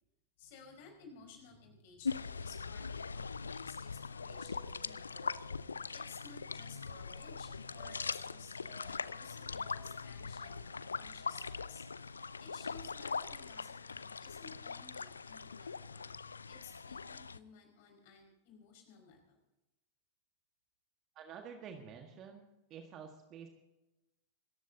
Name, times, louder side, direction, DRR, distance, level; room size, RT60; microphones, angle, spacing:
voice 1, 0.4-3.8 4.1-5.3 5.9-11.8 12.4-16.1 16.5-19.4, left 6 dB, 50° left, 1 dB, 5.5 m, -57 dB
sound 1, 2.0-17.4, left 5 dB, 75° left, 0.5 m, -41 dB
sound 2, 3.9-6.1 6.9-10.1 10.4-12.8 13.0-13.1 13.9-14.0 14.8-15.0 15.6-15.7 16.5-16.8, right 4 dB, 60° right, 4.9 m, -61 dB
voice 2, 21.1-23.5, right 7 dB, 35° right, 4 dB, 1.6 m, -49 dB
26.5 x 14.5 x 2.8 m, 1.0 s
figure-of-eight pair, 90°, 0 cm